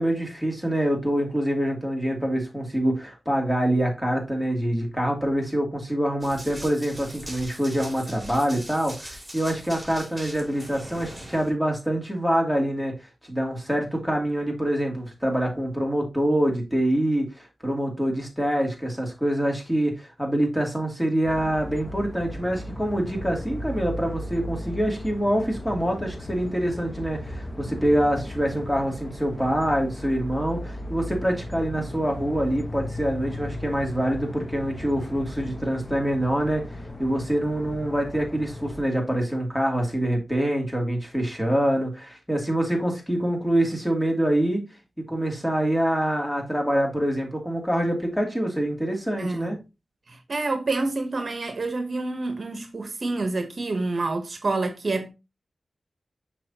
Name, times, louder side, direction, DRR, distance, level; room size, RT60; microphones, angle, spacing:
voice 1, 0.0-12.9 13.3-36.6 37.0-44.6 45.1-49.6, right 1 dB, 5° left, 2.4 m, -25 dB
Run, 6.2-11.5, right 1 dB, 15° right, 3.1 m, -41 dB
sound 1, 21.2-38.8, left 1 dB, 25° left, 1.0 m, -36 dB
voice 2, 49.2-49.6 50.1-55.1, right 3 dB, 55° right, 1.0 m, -28 dB
6.4 x 5.8 x 2.8 m
wide cardioid pair, 65°, 0 cm